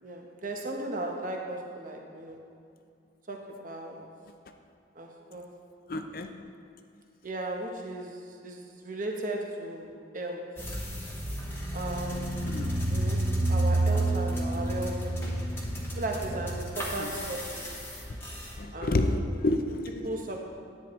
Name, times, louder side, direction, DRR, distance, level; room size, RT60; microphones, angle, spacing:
voice 1, 0.0-2.4 3.3-4.0 4.9-5.5 7.2-10.5 11.7-12.3 12.9-15.2 15.9-17.7 18.7-19.4 20.0-20.4, right 1 dB, 45° right, 1 dB, 1.0 m, -36 dB
voice 2, 5.9-6.3 12.5-12.8 17.0-17.1 18.6-20.1, left 2 dB, 50° left, 6 dB, 0.6 m, -29 dB
sound 1, 10.6-18.5, right 1 dB, 15° left, 1.0 m, -30 dB
10.0 x 9.3 x 3.1 m, 2.4 s
head